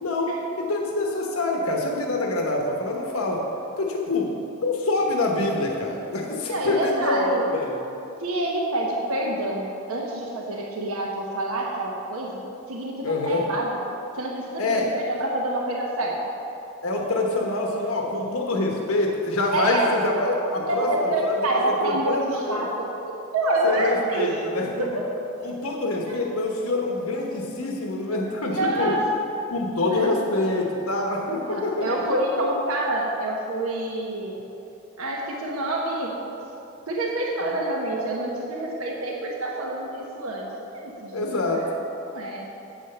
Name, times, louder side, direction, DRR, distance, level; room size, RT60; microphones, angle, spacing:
voice 1, 0.0-3.4 3.8-4.3 4.6-7.8 13.0-13.5 14.6-14.9 16.8-22.6 23.7-24.9 25.4-28.9 29.5-31.9 41.1-41.7, left 2 dB, 80° left, 0 dB, 1.1 m, -26 dB
voice 2, 6.5-7.4 8.2-13.7 14.1-16.2 19.5-19.9 20.7-22.9 23.3-24.4 24.8-25.1 25.8-26.2 28.5-29.1 29.9-30.1 31.5-34.4 35.0-36.1 36.9-41.7 42.1-42.4, right 1 dB, 85° right, -2 dB, 1.1 m, -27 dB
8.7 x 6.3 x 6.6 m, 2.9 s
head